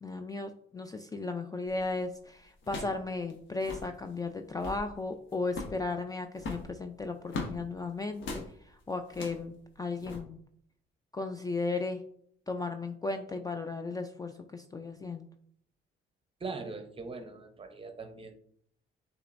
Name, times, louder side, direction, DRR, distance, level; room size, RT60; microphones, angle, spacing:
voice 1, 0.0-10.4 11.1-12.0 12.5-15.3, left 3 dB, 20° left, 6 dB, 0.3 m, -35 dB
sound 1, 1.7-1.9 2.6-3.0 3.3-3.4 3.6-3.9 4.4-4.9 5.5-5.8 6.4-7.6 8.2-8.5 9.1-9.5 10.0-10.2, left 3 dB, 75° left, 1.0 m, -39 dB
voice 2, 16.4-18.3, right 3 dB, 25° right, 7 dB, 0.7 m, -41 dB
6.5 x 3.0 x 2.5 m, 0.64 s
cardioid pair, 90°, 20 cm